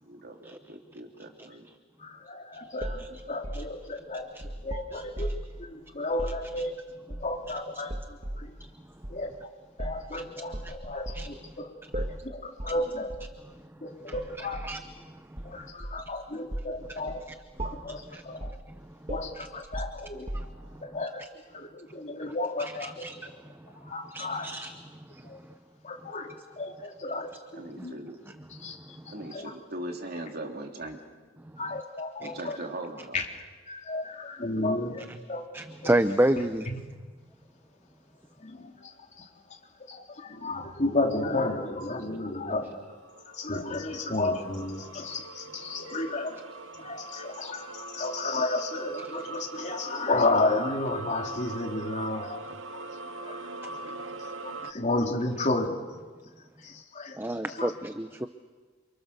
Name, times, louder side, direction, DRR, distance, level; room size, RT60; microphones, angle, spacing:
voice 1, 0.0-1.7 27.5-28.2 29.1-31.0 32.2-33.2, right 1 dB, 55° right, 2 dB, 3.3 m, -40 dB
voice 2, 2.0-4.3 4.6-5.3 5.6-6.7 7.2-8.5 9.1-9.3 9.8-13.1 13.8-14.6 15.4-17.2 17.6-18.6 19.1-20.3 20.8-21.3 21.5-23.1 23.3-23.4 23.8-24.5 25.2-25.4 25.8-26.3 26.6-27.9 28.5-28.8 29.0-29.5 31.6-32.6 33.1-33.2 33.7-35.4 35.8-35.9 36.7-36.8 38.4-39.6 39.9-42.7 43.3-46.4 46.8-52.4 52.7-52.9 53.2-55.8 56.6-57.2 57.5-57.7, left 2 dB, 40° left, 1 dB, 3.7 m, -32 dB
sound 1, 2.8-5.6 6.1-6.4 7.1-7.5 7.9-8.5 9.0-9.2 9.8-10.1 10.5-11.3 11.9-12.3 12.6-12.8 13.1-13.3 14.1-14.8 15.4-16.1 16.5-16.8 17.1-17.3 17.6-18.0 18.4-18.7 19.1-20.7, right 1 dB, 35° right, 1.8 m, -36 dB
voice 3, 17.9-18.2 20.3-20.5 22.8-23.2 24.1-24.7 25.1-25.2 32.2-32.3 35.5-36.7 57.2-58.3, right 1 dB, 10° right, 9 dB, 0.8 m, -29 dB
sound 2, 42.1-54.7, right 3 dB, 75° right, 1.1 m, -42 dB
29.0 x 28.5 x 6.9 m, 1.4 s
head